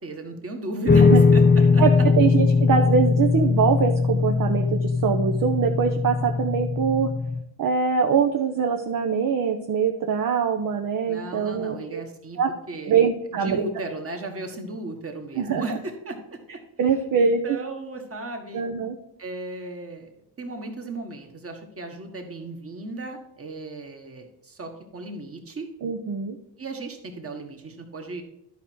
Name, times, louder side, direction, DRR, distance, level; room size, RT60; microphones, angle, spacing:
voice 1, 0.0-1.4 1.7-1.8 11.1-12.4 12.7-13.1 13.4-16.6 17.2-18.6 19.2-20.1 20.4-25.7 26.6-28.2, right 2 dB, 30° right, 4 dB, 1.7 m, -35 dB
sound 1, 0.9-7.4, left 4 dB, 20° left, 0.6 m, -20 dB
voice 2, 2.2-7.1 7.6-12.0 12.4-12.5 12.9-13.7 15.3-15.8 16.8-17.6 18.5-19.0 25.8-26.4, right 6 dB, 45° right, 3 dB, 0.9 m, -23 dB
11.5 x 5.1 x 4.7 m, 0.79 s
cardioid pair, 90°, 46 cm